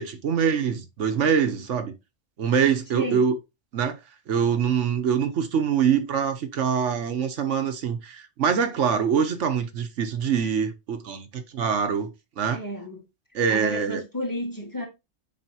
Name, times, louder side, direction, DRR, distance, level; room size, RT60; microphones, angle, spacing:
voice 1, 0.0-1.9 2.4-3.4 3.7-4.0 4.3-12.6 13.3-14.0, right 7 dB, 75° right, 1.2 m, -24 dB
voice 2, 2.9-3.3 12.5-13.0 13.5-14.9, equal, 15° left, 2.0 m, -32 dB
7.6 x 4.8 x 2.8 m
omnidirectional pair, 1.2 m